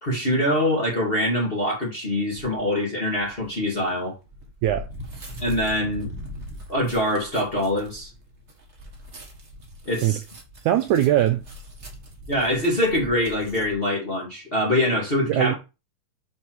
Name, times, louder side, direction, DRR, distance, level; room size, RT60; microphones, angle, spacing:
voice 1, 0.0-4.1 5.4-6.1 6.7-8.1 9.8-10.2 12.3-15.5, left 1 dB, 20° left, 1.7 m, -24 dB
sound 1, 2.3-2.6 3.2-13.7, equal, 70° right, 0.6 m, -41 dB
voice 2, 10.7-11.4 15.3-15.5, right 12 dB, 90° right, 1.7 m, -20 dB
6.6 x 4.2 x 4.6 m
omnidirectional pair, 4.0 m